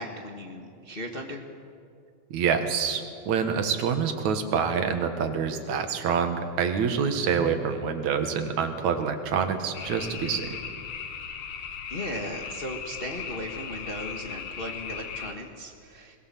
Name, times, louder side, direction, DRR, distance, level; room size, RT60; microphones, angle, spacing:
voice 1, 0.0-1.4 11.9-16.2, equal, 35° left, 2 dB, 0.9 m, -37 dB
voice 2, 2.3-10.5, right 6 dB, 75° right, 7 dB, 2.9 m, -26 dB
sound 1, 9.7-15.3, left 7 dB, 65° left, 2.5 m, -37 dB
21.5 x 20.5 x 7.5 m, 2.3 s
omnidirectional pair, 3.3 m